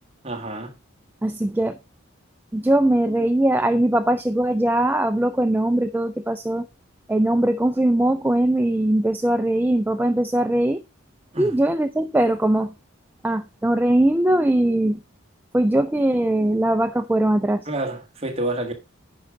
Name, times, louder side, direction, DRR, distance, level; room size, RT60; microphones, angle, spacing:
voice 1, 0.2-0.7 11.3-11.5 17.6-18.7, right 1 dB, 30° right, 1.5 m, -28 dB
voice 2, 1.2-1.8 2.5-6.7 7.1-10.8 11.4-12.7 13.2-15.0 15.5-17.7, right 1 dB, 10° right, 0.3 m, -20 dB
10.0 x 5.2 x 4.8 m
head